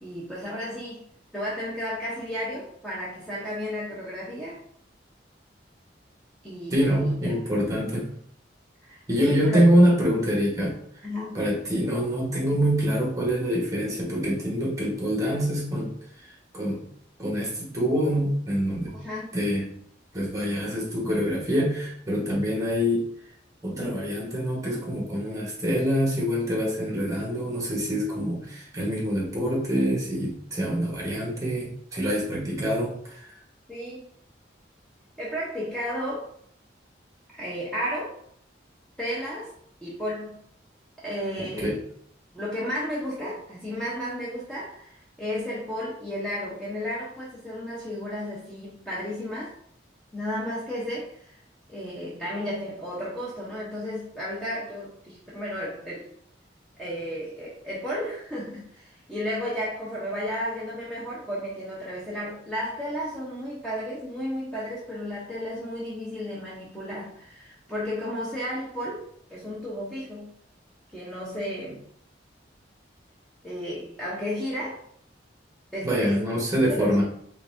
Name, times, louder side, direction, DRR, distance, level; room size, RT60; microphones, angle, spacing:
voice 1, 0.0-1.0 1.3-4.6 6.4-7.3 8.8-9.6 11.0-11.4 18.9-19.4 33.7-34.1 35.2-36.3 37.4-38.2 39.0-39.5 39.8-40.4 41.0-41.7 42.3-49.5 50.1-51.4 51.7-56.1 56.8-69.0 69.3-70.3 70.9-71.8 73.4-74.8 75.7-77.0, equal, 5° left, -8 dB, 0.7 m, -33 dB
voice 2, 6.7-8.1 9.1-10.7 11.3-15.9 16.5-16.8 17.2-18.9 19.3-19.7 20.1-23.1 23.6-33.3 41.6-41.8 75.8-77.0, equal, 20° right, -3 dB, 1.1 m, -25 dB
3.9 x 3.3 x 2.5 m, 0.66 s
head